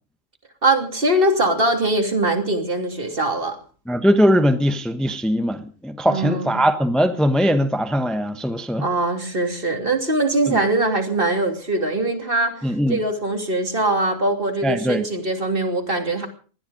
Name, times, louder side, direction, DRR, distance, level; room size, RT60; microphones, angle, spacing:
voice 1, 0.6-3.6 6.1-6.6 8.8-16.3, right 2 dB, 45° right, 3.2 m, -22 dB
voice 2, 3.9-8.9 10.5-10.7 12.6-13.0 14.6-15.0, equal, ahead, 1.1 m, -20 dB
20.0 x 14.0 x 5.2 m
omnidirectional pair, 1.3 m